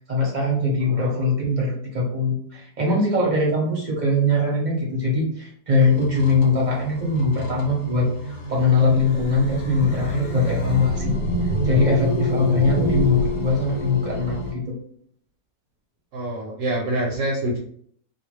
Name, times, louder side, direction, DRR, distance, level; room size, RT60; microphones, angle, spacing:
voice 1, 0.0-11.2 11.6-14.7, left 2 dB, 40° right, -3 dB, 0.7 m, -21 dB
voice 2, 0.9-1.2 16.1-17.6, right 1 dB, 70° right, -1 dB, 0.9 m, -26 dB
sound 1, 5.8-14.5, equal, 85° left, 1.2 m, -27 dB
2.4 x 2.3 x 3.1 m, 0.63 s
omnidirectional pair, 1.5 m